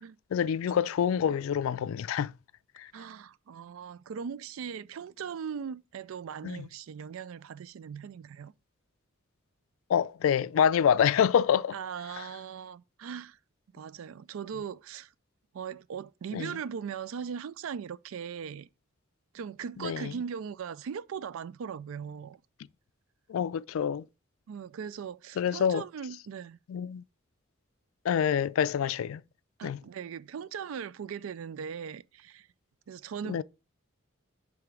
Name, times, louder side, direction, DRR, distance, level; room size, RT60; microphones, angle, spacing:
voice 1, 0.3-2.3 2.8-2.9 6.4-6.7 9.9-11.8 12.2-12.3 16.3-16.5 19.8-20.1 23.3-24.0 25.4-25.8 26.7-27.0 28.0-29.2 29.6-29.8 33.3-33.4, left 8 dB, 75° left, 0.3 m, -26 dB
voice 2, 2.9-8.5 11.7-13.4 13.7-15.1 15.5-18.7 19.3-22.4 24.5-26.6 29.6-32.5 32.9-33.4, right 7 dB, 80° right, 0.4 m, -39 dB
6.8 x 3.4 x 4.7 m
head